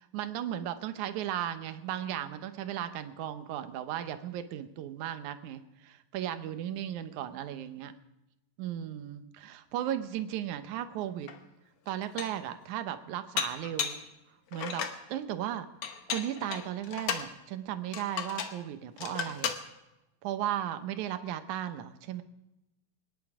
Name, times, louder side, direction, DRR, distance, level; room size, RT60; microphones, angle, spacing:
voice 1, 0.1-7.9 8.6-11.3 11.9-14.0 14.5-14.8 15.1-15.7 16.1-19.6 20.2-22.2, right 11 dB, 70° right, 10 dB, 2.1 m, -36 dB
Dishes pots and pans, 11.3-11.4 11.9-12.5 13.4-14.1 14.5-15.0 15.8-17.3 17.9-18.6 19.0-19.6, left 7 dB, 65° left, 1.5 m, -35 dB
25.0 x 10.5 x 4.8 m, 0.94 s
omnidirectional pair, 4.0 m